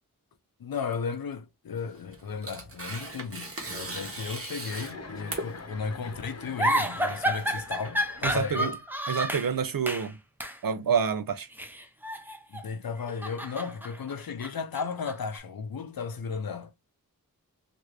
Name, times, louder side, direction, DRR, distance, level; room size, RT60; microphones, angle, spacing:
voice 1, 0.6-8.8 12.5-16.7, left 5 dB, 85° left, 0.6 m, -35 dB
Tearing, 1.8-8.6, right 2 dB, 40° right, 1.1 m, -40 dB
Chuckle chortle, 4.6-8.6, left 3 dB, 45° left, 0.8 m, -45 dB
sound 1, 6.6-9.5 9.9-10.1 10.4-10.6 11.5-12.7 13.0-15.4, equal, 5° right, 0.5 m, -31 dB
voice 2, 8.2-8.7 9.1-10.1 10.6-11.5, right 6 dB, 75° right, 0.6 m, -27 dB
3.0 x 2.5 x 3.1 m
wide cardioid pair, 65°, 35 cm